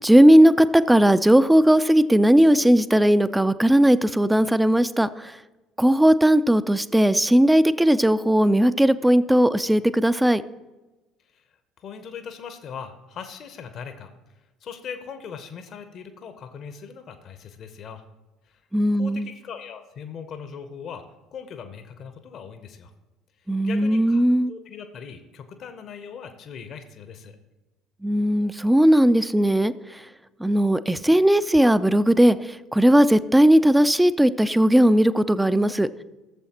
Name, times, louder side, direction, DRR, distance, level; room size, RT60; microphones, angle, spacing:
voice 1, 0.0-5.3 5.8-10.4 18.7-19.3 23.5-24.5 28.0-30.0 30.4-35.9, right 1 dB, 5° right, 15 dB, 0.4 m, -18 dB
voice 2, 11.8-14.1 14.6-18.0 18.4-18.6 18.9-21.0 21.3-22.9 23.4-27.4, left 6 dB, 50° left, 8 dB, 0.8 m, -40 dB
16.0 x 7.0 x 2.9 m, 1.1 s
figure-of-eight pair, 60°, 0 cm